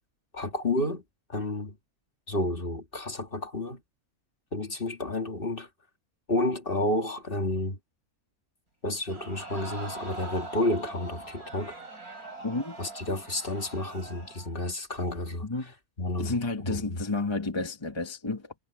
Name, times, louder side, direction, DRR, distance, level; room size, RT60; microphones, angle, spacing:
voice 1, 0.3-1.0 1.3-1.8 2.3-3.8 4.5-5.7 6.3-7.8 8.8-11.8 12.8-15.5 16.0-16.3 16.7-17.0, left 1 dB, 40° left, 2.3 m, -30 dB
Crowd, 9.1-14.5 15.0-15.1, right 2 dB, 85° right, 7.1 m, -42 dB
voice 2, 12.4-12.7 15.4-15.7 16.2-18.5, left 3 dB, 20° left, 1.4 m, -31 dB
omnidirectional pair, 1.5 m